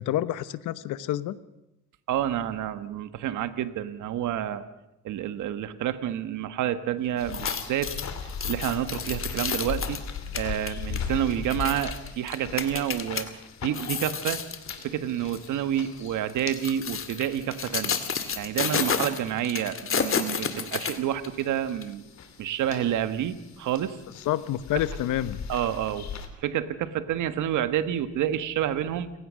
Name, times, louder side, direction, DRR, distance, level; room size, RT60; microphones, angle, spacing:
voice 1, 0.0-1.4 24.3-25.4, left 13 dB, 85° left, 15 dB, 1.0 m, -28 dB
voice 2, 2.1-4.6 5.0-7.9 8.5-10.0 10.3-13.3 13.6-14.4 14.8-18.0 18.4-22.0 22.4-24.0 25.5-26.1 26.4-29.1, right 11 dB, 80° right, 11 dB, 1.5 m, -29 dB
sound 1, 7.2-26.3, left 6 dB, 65° left, 3.1 m, -39 dB
sound 2, 7.2-13.2 13.7-14.8 15.3-15.5 16.3-21.4 21.8-21.9, left 6 dB, 45° left, 2.3 m, -31 dB
29.0 x 17.0 x 6.4 m, 0.92 s
cardioid pair, 90°, 30 cm